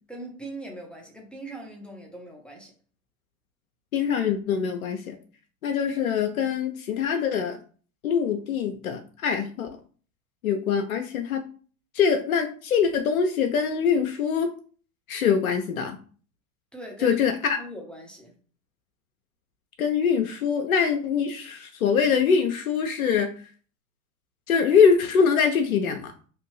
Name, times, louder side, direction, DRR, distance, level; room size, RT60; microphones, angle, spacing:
voice 1, 0.1-2.7 16.7-17.2 17.6-18.4, right 1 dB, ahead, 0.7 m, -40 dB
voice 2, 3.9-5.2 5.6-7.6 8.0-9.7 10.4-11.4 11.9-14.5 15.1-16.0 17.0-17.6 19.8-23.3 24.5-26.1, left 6 dB, 90° left, 0.5 m, -23 dB
2.7 x 2.5 x 3.1 m
hypercardioid pair, 95°, 41 cm